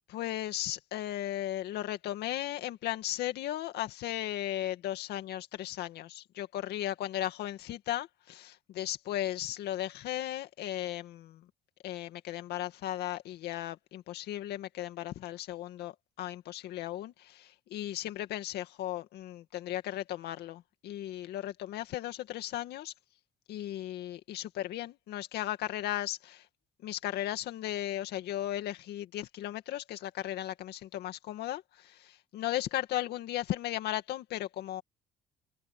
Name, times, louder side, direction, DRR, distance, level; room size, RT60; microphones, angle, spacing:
voice 1, 0.1-11.5 11.8-22.9 23.5-26.5 26.8-34.8, left 13 dB, 75° left, 2.2 m, -36 dB
open air
cardioid pair, 110°, 17 cm